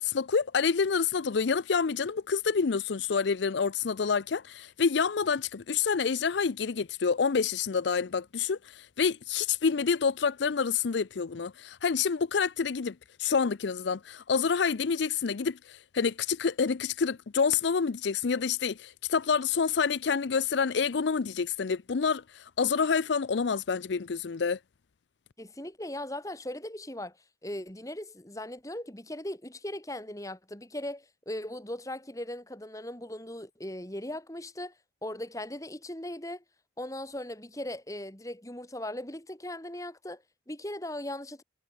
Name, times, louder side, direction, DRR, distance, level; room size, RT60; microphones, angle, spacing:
voice 1, 0.0-24.6, left 5 dB, 70° left, 0.5 m, -28 dB
voice 2, 25.4-27.2 27.4-34.7 35.0-36.4 36.8-41.4, left 1 dB, 15° left, 2.4 m, -38 dB
head